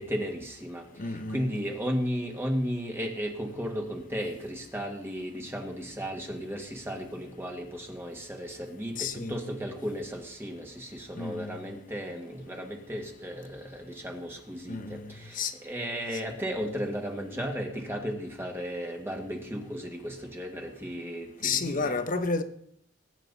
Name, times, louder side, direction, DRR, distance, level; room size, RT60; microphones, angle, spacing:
voice 1, 0.0-22.0, equal, 10° right, 1.7 m, -35 dB
voice 2, 1.0-1.5 9.0-9.5 11.1-11.6 14.7-15.5 16.1-16.2 21.4-22.4, left 4 dB, 45° left, 1.0 m, -31 dB
19.5 x 9.0 x 4.1 m
head